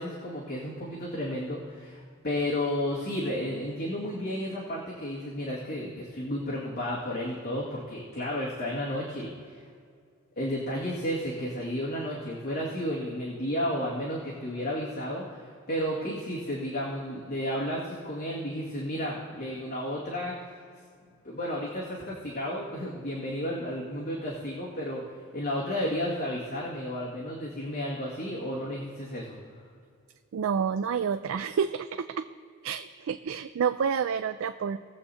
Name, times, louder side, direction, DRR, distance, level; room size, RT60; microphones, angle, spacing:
voice 1, 0.0-9.6 10.4-20.4 21.2-25.0 25.3-29.4, equal, 50° left, -7 dB, 2.1 m, -32 dB
voice 2, 30.3-32.2 32.6-34.8, right 7 dB, 70° right, 10 dB, 0.4 m, -29 dB
20.5 x 7.7 x 2.8 m, 2.2 s
head